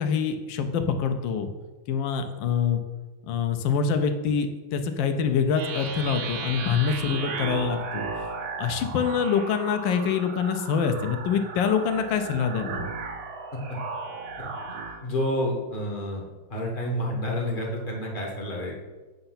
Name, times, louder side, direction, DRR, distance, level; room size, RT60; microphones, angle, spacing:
voice 1, 0.0-1.5 1.9-2.8 3.3-8.1 8.6-12.9, left 6 dB, 75° left, 7 dB, 1.2 m, -25 dB
sound 1, 5.5-15.0, right 4 dB, 80° right, 1.5 m, -35 dB
voice 2, 15.0-16.2 16.5-18.7, left 1 dB, 35° left, -1 dB, 0.8 m, -29 dB
7.8 x 2.6 x 5.6 m, 1.3 s
omnidirectional pair, 2.3 m